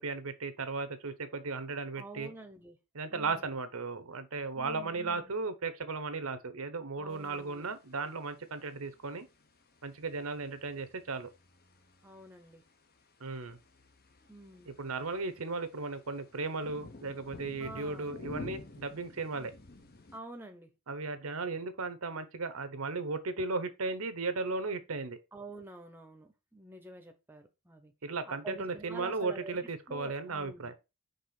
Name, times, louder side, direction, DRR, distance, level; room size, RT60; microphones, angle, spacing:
voice 1, 0.0-2.3 2.9-9.3 9.8-11.3 13.2-13.6 14.8-19.5 20.9-25.2 28.0-30.7, right 3 dB, 75° right, 0.9 m, -36 dB
voice 2, 2.0-2.8 3.1-3.5 4.5-5.3 7.0-7.7 12.0-12.6 14.3-14.7 17.6-18.1 19.3-19.5 20.1-20.7 25.3-27.9 28.2-30.7, right 2 dB, 10° right, 0.9 m, -48 dB
sound 1, 7.1-20.2, left 2 dB, 45° left, 1.0 m, -52 dB
5.4 x 3.6 x 5.8 m
head